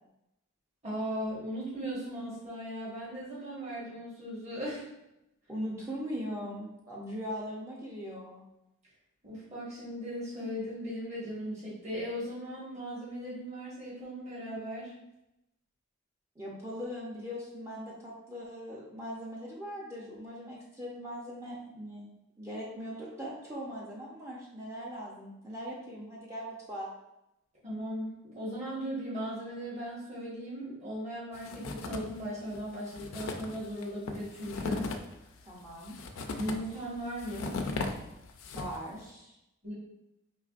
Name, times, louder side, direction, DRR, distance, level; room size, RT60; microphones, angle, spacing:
voice 1, 0.8-4.9 9.2-14.9 27.6-34.9 36.3-37.5 39.6-39.7, equal, 30° right, -8 dB, 1.4 m, -38 dB
voice 2, 5.5-8.4 16.4-22.1 22.4-26.9 35.4-36.0 38.5-39.3, equal, 15° right, -5 dB, 0.5 m, -40 dB
sound 1, 31.3-32.2 32.5-32.6 32.9-38.9, left 3 dB, 70° left, 0.4 m, -38 dB
4.7 x 3.1 x 2.5 m, 0.87 s
head